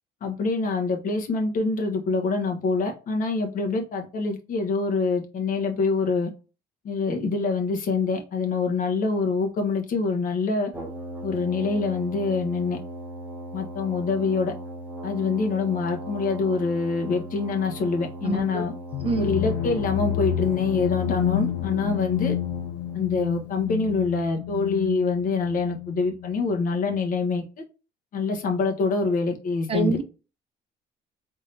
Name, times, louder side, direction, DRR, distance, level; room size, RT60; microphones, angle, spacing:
voice 1, 0.2-6.3 6.8-10.7 11.2-12.8 13.5-14.5 15.0-18.7 19.2-22.4 22.9-27.4 28.1-30.0, left 4 dB, 55° left, 1.2 m, -25 dB
Brass instrument, 10.7-23.0, right 1 dB, 10° right, 1.9 m, -38 dB
voice 2, 18.2-18.7 19.0-19.3 29.7-30.0, right 2 dB, 35° right, 0.8 m, -25 dB
sound 1, 18.9-26.6, left 12 dB, 75° left, 0.4 m, -30 dB
3.7 x 3.4 x 2.7 m
cardioid pair, 110°, 17 cm